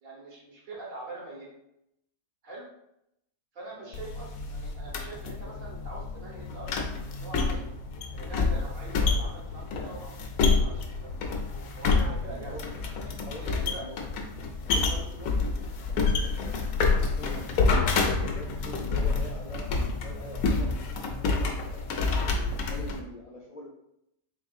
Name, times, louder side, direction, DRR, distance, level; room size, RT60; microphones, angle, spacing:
voice 1, 0.0-1.5 2.4-2.7 3.5-7.6 8.1-11.2 11.7-12.5 13.0-13.2 13.4-13.9 14.9-15.2 22.8-22.9, right 2 dB, 75° right, -4 dB, 1.6 m, -43 dB
sound 1, 3.9-23.0, left 4 dB, 90° left, 1.1 m, -28 dB
voice 2, 12.2-12.6 13.2-14.3 14.7-15.6 15.9-16.6 17.1-17.5 18.2-19.7 20.0-21.9 22.2-23.7, left 1 dB, 65° left, -3 dB, 0.3 m, -44 dB
4.1 x 3.6 x 2.4 m, 0.81 s
omnidirectional pair, 1.5 m